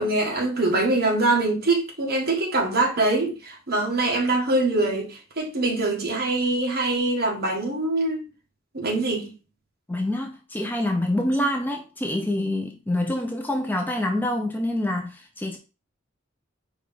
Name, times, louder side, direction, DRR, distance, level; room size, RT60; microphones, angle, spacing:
voice 1, 0.0-8.2 8.7-9.3, right 2 dB, 50° right, 1.4 m, -23 dB
voice 2, 9.9-15.6, left 1 dB, 10° left, 0.5 m, -26 dB
4.7 x 3.0 x 3.7 m
head